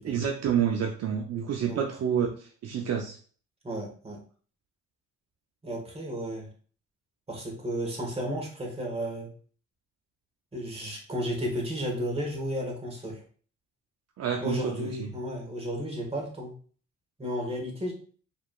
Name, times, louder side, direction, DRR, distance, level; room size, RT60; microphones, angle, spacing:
voice 1, 0.0-3.2 14.2-15.1, right 8 dB, 55° right, 2 dB, 0.6 m, -29 dB
voice 2, 3.6-4.2 5.6-6.5 7.3-9.3 10.5-13.2 14.4-16.5 17.2-17.9, equal, 20° right, 0 dB, 1.6 m, -33 dB
4.9 x 3.4 x 2.4 m, 0.43 s
cardioid pair, 90°, 30 cm